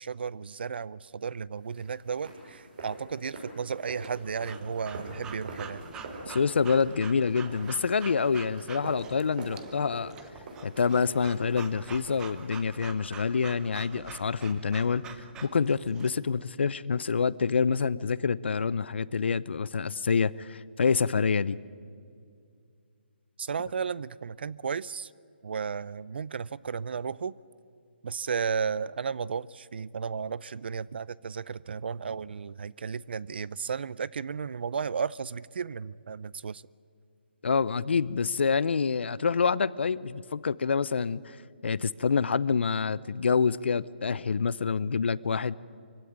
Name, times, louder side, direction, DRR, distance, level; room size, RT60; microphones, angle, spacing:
voice 1, 0.0-5.8 23.4-25.1 25.4-27.3 28.0-36.6, right 6 dB, 65° right, 22 dB, 0.5 m, -34 dB
sound 1, 1.7-12.8, right 2 dB, 50° right, 6.1 m, -45 dB
Breathing / Dog, 4.0-16.1, right 7 dB, 10° right, 0.8 m, -47 dB
voice 2, 6.3-10.1 10.6-15.0 15.4-21.6 37.4-41.4 41.6-45.5, left 5 dB, 75° left, 20 dB, 0.7 m, -27 dB
24.0 x 16.0 x 9.6 m, 2.3 s
hypercardioid pair, 160°, 6 cm